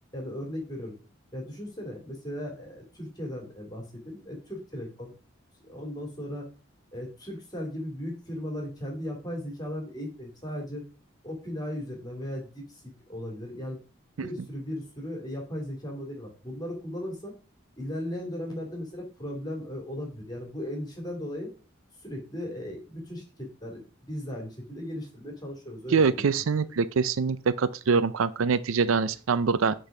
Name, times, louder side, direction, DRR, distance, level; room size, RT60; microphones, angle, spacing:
voice 1, 0.1-0.9 1.3-5.1 5.6-6.5 6.9-10.8 11.2-13.8 14.2-17.3 17.7-21.5 22.0-26.3, left 1 dB, 20° left, 2.5 m, -37 dB
voice 2, 25.9-29.7, right 5 dB, 75° right, 0.5 m, -24 dB
6.5 x 4.0 x 5.9 m
head